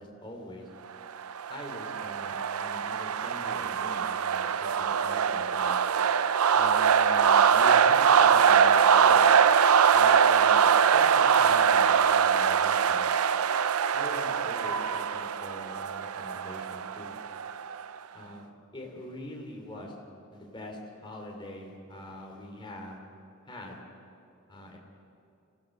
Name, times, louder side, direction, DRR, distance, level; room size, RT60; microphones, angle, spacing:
voice 1, 0.2-0.7 1.5-5.8 6.5-9.3 9.9-13.1 13.9-17.1 18.1-19.9 20.3-23.0 23.5-23.8 24.5-24.8, left 1 dB, 20° left, 1 dB, 3.0 m, -44 dB
sound 1, 1.2-17.8, right 7 dB, 90° right, 0.5 m, -23 dB
25.0 x 16.0 x 6.6 m, 2.6 s
head